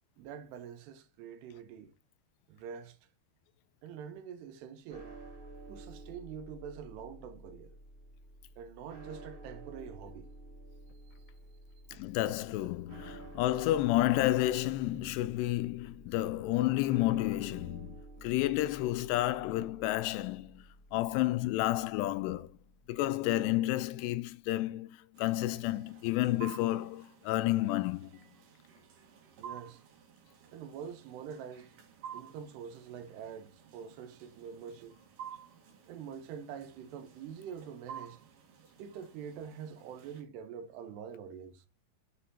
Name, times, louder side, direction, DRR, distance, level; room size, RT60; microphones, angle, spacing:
voice 1, 0.2-1.9 2.5-3.0 3.8-5.2 5.7-7.8 8.6-10.3 11.9-12.0 29.4-29.8 30.5-31.8 32.1-35.0 35.9-38.2 38.8-41.6, right 7 dB, 90° right, 2.9 m, -45 dB
sound 1, 4.9-23.1, right 2 dB, 40° right, 1.7 m, -51 dB
voice 2, 12.0-22.6 22.9-28.1, left 16 dB, 85° left, 2.6 m, -31 dB
sound 2, 25.2-40.2, right 8 dB, 60° right, 2.8 m, -52 dB
6.8 x 4.4 x 4.2 m
omnidirectional pair, 4.9 m